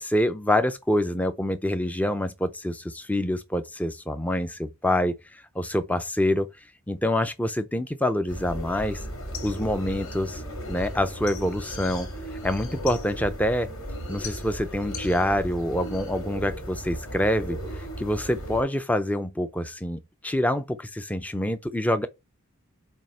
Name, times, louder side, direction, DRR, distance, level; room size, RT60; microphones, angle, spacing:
voice 1, 0.0-6.5 6.9-9.0 9.4-10.4 10.7-12.1 12.4-13.7 14.1-17.6 18.0-22.1, left 1 dB, 5° left, 0.5 m, -26 dB
sound 1, 8.3-18.6, equal, 65° left, 3.2 m, -36 dB
7.3 x 2.8 x 5.4 m
head